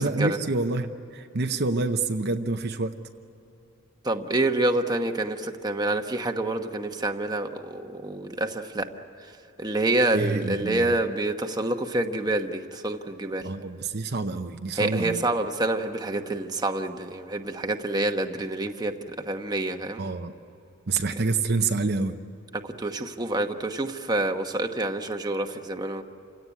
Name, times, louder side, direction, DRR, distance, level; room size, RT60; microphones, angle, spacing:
voice 1, 0.0-2.9 10.1-11.0 13.4-15.2 20.0-20.3 20.9-22.2, right 3 dB, 50° right, 6 dB, 0.8 m, -27 dB
voice 2, 4.0-8.9 9.6-13.5 14.8-20.0 22.6-26.0, right 2 dB, 20° right, 5 dB, 1.1 m, -27 dB
28.5 x 17.0 x 9.5 m, 2.9 s
head